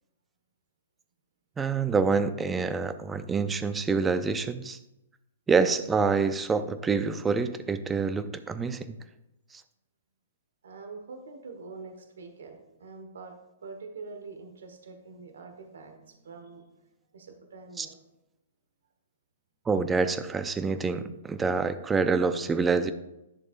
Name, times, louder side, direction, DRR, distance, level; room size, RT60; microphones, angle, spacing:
voice 1, 1.6-4.8 5.5-9.0 9.5-9.6 17.8-17.9 19.7-22.9, right 4 dB, 10° right, 11 dB, 0.5 m, -26 dB
voice 2, 10.6-16.8 17.1-18.0, right 4 dB, 80° right, 5 dB, 1.3 m, -45 dB
10.5 x 6.7 x 2.5 m, 0.92 s
hypercardioid pair, 145°, 0 cm